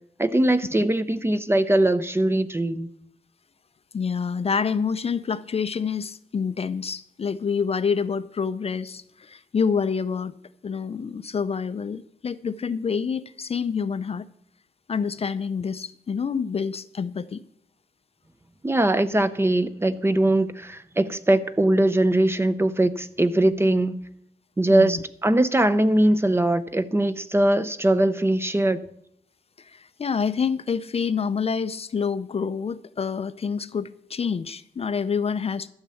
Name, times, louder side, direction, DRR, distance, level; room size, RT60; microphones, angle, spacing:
voice 1, 0.2-2.9 18.6-24.0 24.6-28.8, right 1 dB, 15° right, 0.6 m, -21 dB
voice 2, 3.9-10.3 10.6-14.3 14.9-17.4 24.7-25.0 29.6-35.7, left 6 dB, 40° left, 0.5 m, -27 dB
12.5 x 7.4 x 6.9 m
wide cardioid pair, 120°, 16 cm